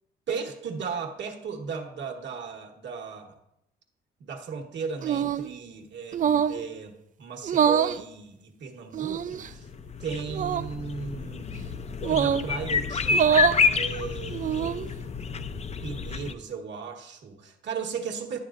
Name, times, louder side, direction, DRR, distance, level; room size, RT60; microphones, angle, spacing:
voice 1, 0.3-3.4 4.2-9.7 10.0-11.6 12.1-14.8 15.8-18.4, right 5 dB, 65° right, 3 dB, 1.3 m, -36 dB
sound 1, 5.0-5.5 6.1-6.6 7.4-8.0 8.9-9.5 10.3-10.7 12.0-12.5 13.1-13.6 14.3-14.9, right 8 dB, 40° right, 0.4 m, -24 dB
sound 2, 9.1-16.3, left 5 dB, 35° left, 0.5 m, -29 dB
11.0 x 6.9 x 2.5 m, 0.82 s
cardioid pair, 90°, 20 cm